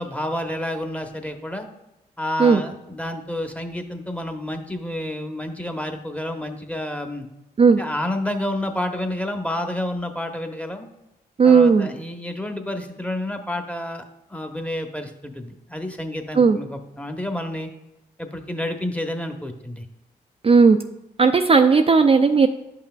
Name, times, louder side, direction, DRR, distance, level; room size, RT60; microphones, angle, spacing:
voice 1, 0.0-1.7 2.2-7.3 7.8-10.9 11.4-14.0 14.3-17.7 18.2-19.8, left 1 dB, 5° left, 5 dB, 1.0 m, -29 dB
voice 2, 11.4-11.9 16.3-16.6 20.4-20.8 21.2-22.5, right 5 dB, 30° right, 6 dB, 0.4 m, -15 dB
9.9 x 5.7 x 2.3 m, 0.92 s
supercardioid pair, 45°, 18 cm